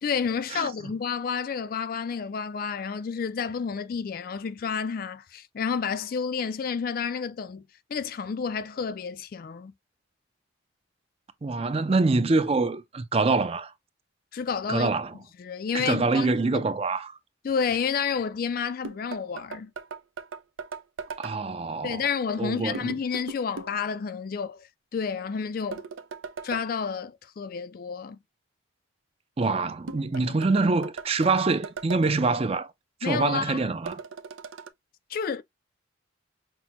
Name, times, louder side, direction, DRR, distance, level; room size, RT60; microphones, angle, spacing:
voice 1, 0.0-7.6 7.9-9.7 14.3-14.9 15.4-16.6 17.4-19.7 21.8-25.8 26.4-28.2 30.3-30.4 33.0-33.7 35.1-35.4, left 6 dB, 45° left, 0.3 m, -30 dB
voice 2, 11.4-13.7 14.7-15.1 15.7-17.1 21.2-22.0 22.4-22.9 29.4-32.7 33.0-34.0, right 3 dB, 30° right, 0.4 m, -25 dB
sound 1, 18.8-21.4 22.7-23.8 25.7-26.7 29.9-32.1 33.9-34.7, right 5 dB, 85° right, 0.5 m, -38 dB
6.0 x 2.2 x 2.8 m
head